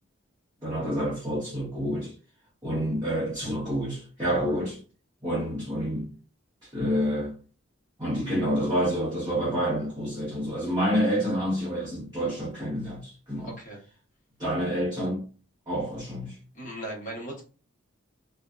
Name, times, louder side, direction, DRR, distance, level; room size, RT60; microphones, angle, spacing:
voice 1, 0.6-2.1 2.6-4.8 5.2-6.1 6.6-7.3 8.0-13.5 14.4-15.3 15.7-16.4, equal, 20° right, 0.7 m, -28 dB
voice 2, 13.4-13.8 16.5-17.4, right 1 dB, 35° left, 0.8 m, -37 dB
2.5 x 2.2 x 2.2 m
head